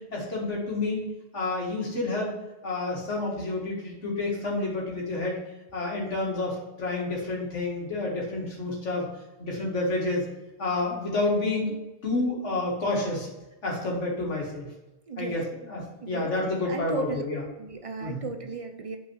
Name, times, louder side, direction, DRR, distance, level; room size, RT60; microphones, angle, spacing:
voice 1, 0.1-1.0 1.3-2.3 2.6-5.4 5.7-9.1 9.4-10.2 10.6-11.7 12.0-13.3 13.6-14.7 15.2-17.4 18.0-18.2, left 2 dB, 75° left, -3 dB, 2.2 m, -29 dB
voice 2, 15.1-15.4 16.0-17.2 17.6-19.0, right 3 dB, 45° right, 5 dB, 0.5 m, -35 dB
5.4 x 4.7 x 6.2 m, 1.0 s
omnidirectional pair, 1.2 m